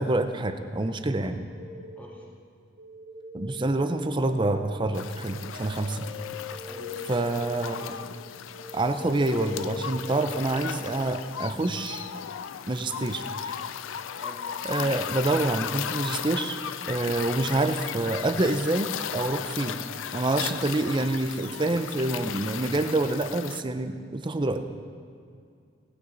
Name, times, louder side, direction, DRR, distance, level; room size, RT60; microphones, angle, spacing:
voice 1, 0.0-1.4 3.3-6.1 7.1-8.0 8.7-12.0 12.7-13.6 14.7-16.6 16.9-19.7 20.1-24.7, right 2 dB, 25° right, 8 dB, 0.6 m, -27 dB
sound 1, 1.5-2.3 2.8-10.8, left 4 dB, 65° right, 1.2 m, -41 dB
voice 2, 2.0-2.3 6.6-7.2 14.1-14.5 19.6-19.9, left 1 dB, 10° left, -3 dB, 1.8 m, -46 dB
sound 2, 4.9-23.6, left 8 dB, 80° left, 0.4 m, -36 dB
18.0 x 9.4 x 3.9 m, 2.3 s
head